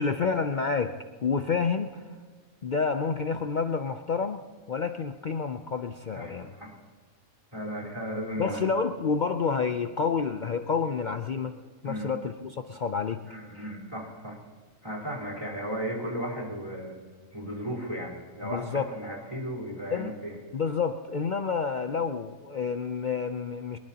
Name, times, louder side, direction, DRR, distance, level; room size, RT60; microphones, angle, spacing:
voice 1, 0.0-2.1 2.6-4.4 4.7-6.5 8.4-11.6 11.8-13.2 18.4-18.9 19.9-20.1 20.5-23.8, left 5 dB, 50° left, 7 dB, 0.5 m, -29 dB
voice 2, 6.1-6.7 7.5-8.8 11.8-12.1 13.2-14.4 14.8-16.9 17.3-20.4, equal, 20° right, -2 dB, 4.4 m, -35 dB
23.0 x 21.0 x 2.9 m, 1.5 s
omnidirectional pair, 1.4 m